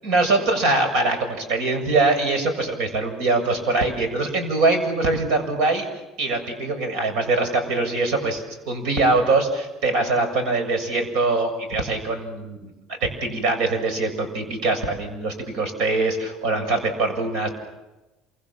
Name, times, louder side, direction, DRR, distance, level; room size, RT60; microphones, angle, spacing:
voice 1, 0.0-5.9 6.2-12.7 13.0-17.5, right 3 dB, 80° right, 7 dB, 7.2 m, -23 dB
28.0 x 25.0 x 7.5 m, 1.1 s
cardioid pair, 155°, 0 cm